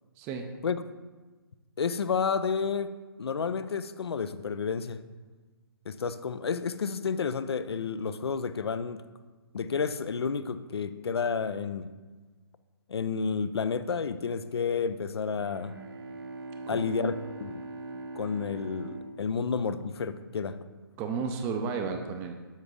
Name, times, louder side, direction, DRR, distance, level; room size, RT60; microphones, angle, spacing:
voice 1, 1.8-2.9 3.2-5.0 5.9-9.0 9.5-11.9 12.9-15.7 16.7-17.6 18.2-20.6, left 5 dB, 80° left, 13 dB, 0.5 m, -30 dB
Bowed string instrument, 15.4-20.3, right 2 dB, 60° right, 0.8 m, -42 dB
voice 2, 21.0-22.3, right 5 dB, 15° right, 5 dB, 0.4 m, -33 dB
7.3 x 3.6 x 6.4 m, 1.3 s
hypercardioid pair, 145°, 13 cm